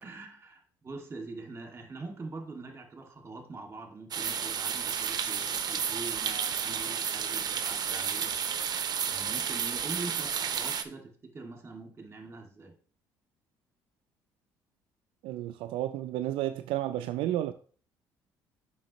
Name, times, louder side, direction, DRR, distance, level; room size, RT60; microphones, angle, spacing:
voice 1, 0.0-8.4 9.0-12.7, right 3 dB, 30° right, 2.1 m, -43 dB
sound 1, 4.1-10.8, right 7 dB, 50° right, 0.8 m, -31 dB
voice 2, 15.2-17.5, right 13 dB, 75° right, 0.4 m, -32 dB
7.4 x 5.9 x 3.0 m
supercardioid pair, 70°, 9 cm